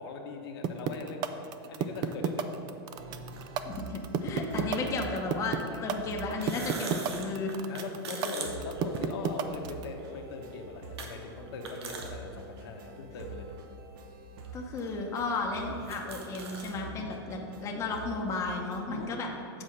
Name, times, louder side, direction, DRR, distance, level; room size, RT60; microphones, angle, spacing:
voice 1, 0.0-2.5 2.9-3.0 4.6-4.9 5.7-6.1 6.5-6.8 7.7-13.5 15.7-16.0 16.8-17.2 18.9-19.1, left 4 dB, 75° left, 2 dB, 1.1 m, -41 dB
sound 1, 0.6-9.8, right 9 dB, 35° right, 0.4 m, -30 dB
sound 2, 2.9-5.7 6.1-7.3 8.5-18.8, right 2 dB, 55° right, 1.0 m, -46 dB
sound 3, 3.4-3.5 4.7-4.8 6.2-9.6 10.0-10.1 11.0-11.1 11.5-12.1 12.6-12.7 13.5-13.6 14.4-14.5 14.8-14.9 15.3-15.4 15.7-16.7, right 4 dB, 85° right, 1.1 m, -41 dB
voice 2, 3.6-7.6 14.5-19.3, left 3 dB, 20° left, 0 dB, 0.8 m, -34 dB
7.6 x 4.3 x 6.4 m, 2.7 s
supercardioid pair, 140°, 13 cm